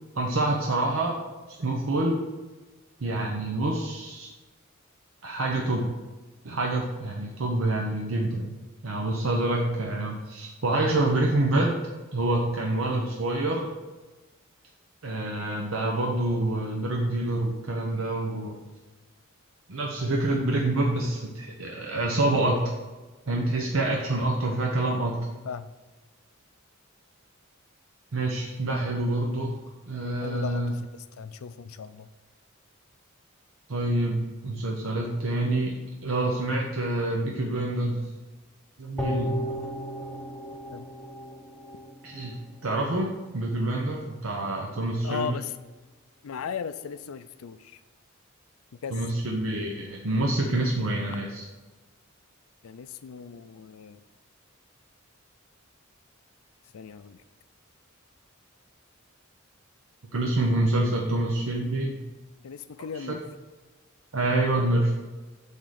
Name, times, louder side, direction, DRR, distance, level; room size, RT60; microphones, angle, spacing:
voice 1, 0.1-1.2 1.5-2.3 3.0-4.3 5.2-5.9 6.4-8.6 8.8-11.8 12.1-13.7 15.0-18.6 19.7-22.7 23.3-25.3 28.1-29.5 29.9-30.7 33.7-38.1 38.8-39.4 42.0-43.1 43.3-45.3 48.9-51.4 60.1-62.0 62.9-63.1 64.1-64.9, right 2 dB, 75° right, 0 dB, 0.8 m, -27 dB
voice 2, 30.2-30.9 31.2-32.1 40.7-40.9 45.0-45.5 46.2-47.8 48.8-49.0 52.6-54.0 56.7-57.2 62.4-63.2, left 6 dB, 90° left, 13 dB, 0.4 m, -37 dB
sound 1, 39.0-42.3 42.7-42.8, equal, 5° left, 0.8 m, -34 dB
7.8 x 3.6 x 6.4 m, 1.2 s
head